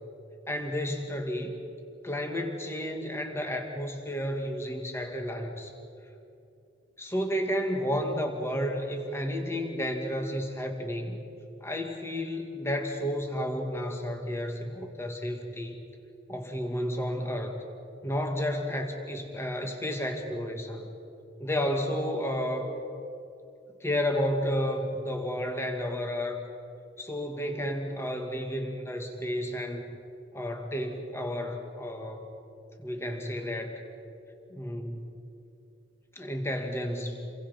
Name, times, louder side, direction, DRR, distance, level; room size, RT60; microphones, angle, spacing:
voice 1, 0.5-1.6 2.0-5.7 7.0-11.2 11.6-15.8 16.3-17.6 18.0-21.0 21.4-22.7 23.8-26.4 27.0-29.8 30.3-32.2 32.8-33.8 34.5-35.1 36.2-37.3, equal, 15° left, 3 dB, 2.1 m, -32 dB
29.5 x 23.0 x 5.4 m, 2.7 s
head